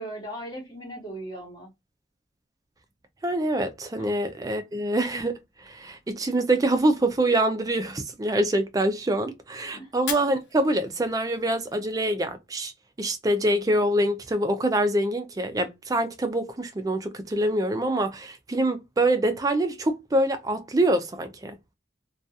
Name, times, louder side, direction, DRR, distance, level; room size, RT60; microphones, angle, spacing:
voice 1, 0.0-1.7 4.0-4.1 9.7-9.9, right 1 dB, 25° left, 0.8 m, -38 dB
voice 2, 3.2-12.7 13.0-21.7, right 1 dB, 20° right, 0.4 m, -25 dB
Fire, 9.9-11.9, left 6 dB, 70° left, 0.6 m, -39 dB
2.3 x 2.3 x 2.6 m
head